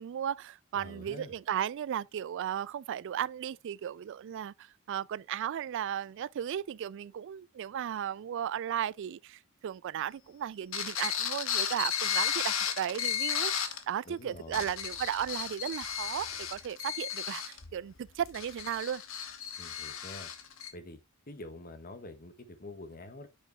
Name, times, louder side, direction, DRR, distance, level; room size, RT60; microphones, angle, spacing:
voice 1, 0.0-19.0, right 9 dB, 60° right, 0.3 m, -35 dB
voice 2, 0.7-1.3 14.0-14.7 19.6-20.3 20.7-21.0 21.3-23.3, left 1 dB, 45° left, 1.5 m, -46 dB
sound 1, 10.7-13.8 14.4-20.7, left 8 dB, 70° left, 1.2 m, -34 dB
9.0 x 6.9 x 2.3 m
head